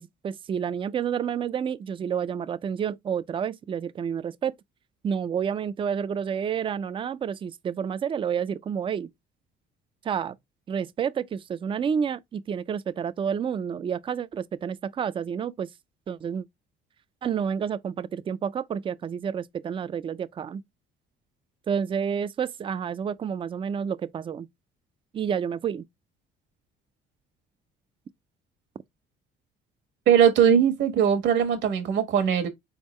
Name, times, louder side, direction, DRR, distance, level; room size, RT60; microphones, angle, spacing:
voice 1, 0.0-4.5 5.0-9.1 10.0-10.4 10.7-15.7 16.1-16.5 17.2-20.6 21.7-24.5 25.1-25.9, right 7 dB, 25° right, 0.4 m, -29 dB
voice 2, 30.1-32.5, right 8 dB, 70° right, 1.3 m, -20 dB
4.2 x 3.6 x 3.1 m
cardioid pair, 105°, 19 cm